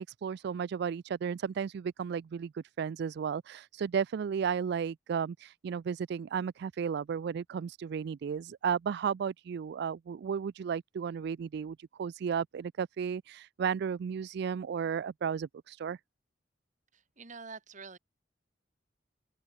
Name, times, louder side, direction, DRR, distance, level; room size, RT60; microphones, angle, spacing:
voice 1, 0.0-16.0, right 7 dB, 60° right, 0.3 m, -34 dB
voice 2, 16.9-18.0, right 4 dB, 40° right, 2.0 m, -47 dB
open air
head